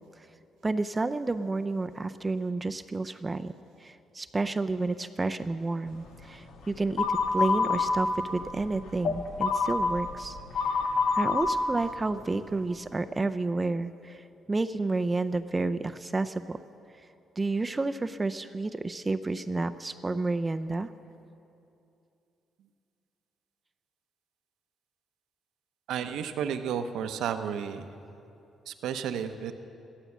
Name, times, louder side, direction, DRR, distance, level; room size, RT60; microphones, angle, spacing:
voice 1, 0.6-3.5 3.8-10.8 11.1-16.6 17.4-20.9, right 3 dB, 20° right, 10 dB, 0.5 m, -30 dB
sound 1, 7.0-7.9 8.4-11.5, left 5 dB, 85° left, 1.6 m, -26 dB
voice 2, 25.9-27.8 28.7-29.5, right 8 dB, 80° right, 8 dB, 0.8 m, -32 dB
14.5 x 13.0 x 7.3 m, 2.7 s
cardioid pair, 90°, 0 cm